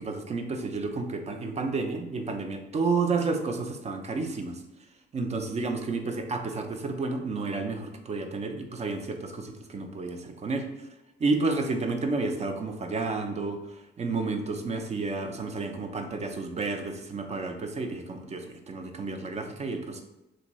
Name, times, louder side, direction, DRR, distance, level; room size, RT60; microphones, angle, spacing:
voice 1, 0.0-4.6 5.1-10.7 11.2-13.6 14.0-20.0, right 3 dB, 35° right, 5 dB, 0.5 m, -31 dB
3.1 x 2.6 x 3.0 m, 0.92 s
cardioid pair, 90°, 20 cm